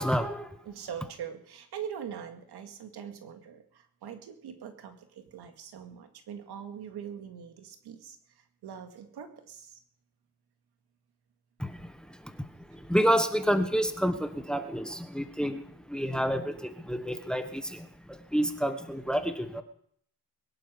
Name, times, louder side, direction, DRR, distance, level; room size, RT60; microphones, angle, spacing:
voice 1, 0.0-0.6 11.6-19.6, equal, ahead, 8 dB, 1.2 m, -29 dB
voice 2, 0.7-9.8, right 8 dB, 80° right, 6 dB, 2.2 m, -42 dB
21.5 x 11.0 x 5.2 m, 0.66 s
cardioid pair, 130°, 38 cm